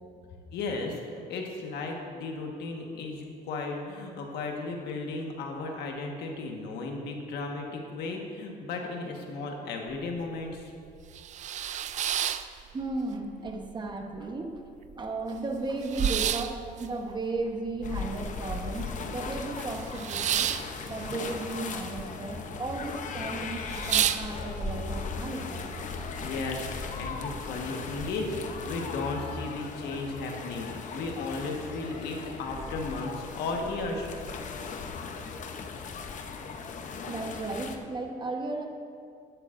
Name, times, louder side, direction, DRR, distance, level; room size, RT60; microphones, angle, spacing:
voice 1, 0.5-10.7 26.2-34.1, left 3 dB, 75° left, 1 dB, 1.5 m, -35 dB
sound 1, 9.9-10.0 10.4-10.5 11.0-13.2 13.5-14.2 14.6-14.7 14.8-19.0 19.3-22.1 22.3-22.9 23.2-23.3 23.6-24.7, right 10 dB, 45° right, 0.4 m, -31 dB
voice 2, 12.7-14.7 14.9-20.5 20.8-25.6 37.1-38.7, right 2 dB, 25° right, 3 dB, 1.1 m, -35 dB
sound 2, 17.8-37.8, left 5 dB, 45° left, 0.8 m, -38 dB
11.5 x 11.5 x 2.6 m, 2.3 s
cardioid pair, 110°, 17 cm